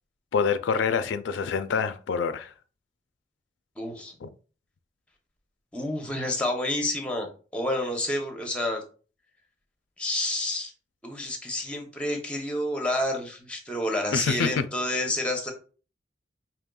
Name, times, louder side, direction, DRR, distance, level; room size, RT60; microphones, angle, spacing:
voice 1, 0.3-2.5 4.2-4.3 14.1-14.6, left 5 dB, 85° left, 0.4 m, -26 dB
voice 2, 3.8-4.1 5.7-7.3 7.5-8.8 10.0-10.7 11.0-15.5, left 1 dB, 5° left, 0.7 m, -29 dB
5.1 x 2.9 x 2.3 m
head